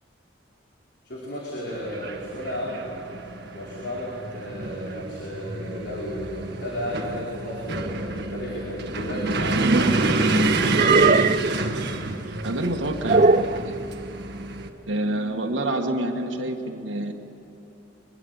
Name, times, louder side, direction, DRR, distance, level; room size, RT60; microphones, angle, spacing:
voice 1, 1.0-2.8 3.5-10.7, equal, 65° left, -5 dB, 4.9 m, -33 dB
sound 1, 1.7-14.7, right 2 dB, 60° right, 1.8 m, -28 dB
sound 2, 9.2-10.0 10.7-11.6 13.1-13.6, right 3 dB, 40° right, 0.7 m, -19 dB
voice 2, 12.4-13.8 14.9-17.1, right 1 dB, 85° right, 0 dB, 1.8 m, -27 dB
24.0 x 23.0 x 8.1 m, 3.0 s
head